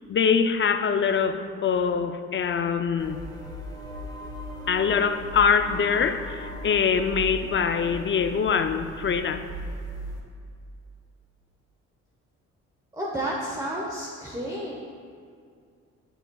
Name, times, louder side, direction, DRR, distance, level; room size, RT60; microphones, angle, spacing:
voice 1, 0.1-3.2 4.7-9.4, left 6 dB, 40° left, 8 dB, 0.5 m, -24 dB
sound 1, 3.0-10.2, equal, 15° left, 1.6 m, -38 dB
voice 2, 12.9-14.8, right 1 dB, 10° right, -3 dB, 1.0 m, -31 dB
11.0 x 8.8 x 2.3 m, 2.2 s
cardioid pair, 90°, 30 cm